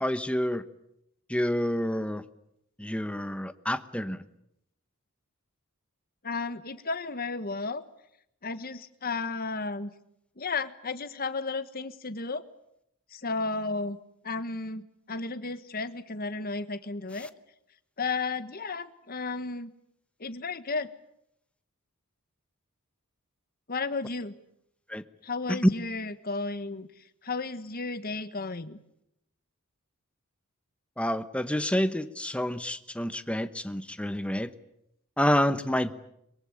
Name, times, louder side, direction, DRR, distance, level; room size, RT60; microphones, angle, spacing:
voice 1, 0.0-0.6 1.3-2.2 2.8-4.2 17.2-17.3 24.9-25.0 25.5-25.6 31.0-34.5 35.2-35.9, equal, 5° left, 12 dB, 1.1 m, -28 dB
voice 2, 6.2-7.8 8.4-9.9 10.4-12.4 13.1-14.0 14.2-17.3 18.0-19.7 20.2-20.9 23.7-24.3 25.2-26.9 27.2-28.8, left 3 dB, 45° left, 12 dB, 1.5 m, -33 dB
23.5 x 22.5 x 9.9 m, 0.77 s
head